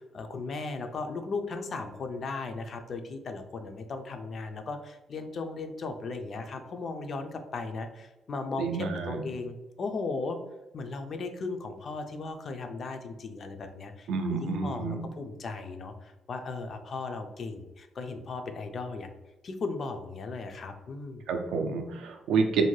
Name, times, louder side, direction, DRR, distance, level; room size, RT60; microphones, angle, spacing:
voice 1, 0.0-8.7 9.1-10.4 10.7-19.1 19.4-21.3, left 3 dB, 45° left, 6 dB, 0.3 m, -36 dB
voice 2, 8.6-9.2 14.1-15.0 21.3-22.6, right 5 dB, 90° right, 4 dB, 0.4 m, -29 dB
2.6 x 2.2 x 3.0 m, 1.0 s
cardioid pair, 140°, 0 cm